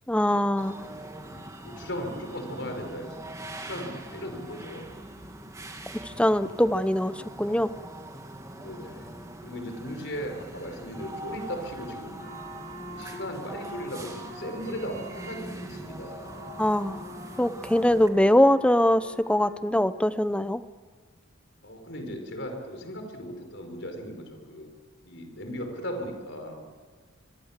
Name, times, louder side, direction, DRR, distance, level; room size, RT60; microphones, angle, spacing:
voice 1, 0.1-0.9 6.0-7.7 16.6-17.1 17.4-20.6, left 1 dB, 5° left, 13 dB, 0.6 m, -23 dB
sound 1, 0.6-18.1, right 1 dB, 15° right, 2.2 m, -42 dB
voice 2, 1.6-4.9 8.5-9.1 9.4-12.2 12.8-16.4 21.6-24.7 25.0-26.6, equal, 55° left, 5 dB, 5.1 m, -37 dB
Wind instrument woodwind instrument, 12.2-20.1, right 1 dB, 40° left, 3.2 m, -48 dB
25.0 x 23.5 x 7.5 m, 1.5 s
head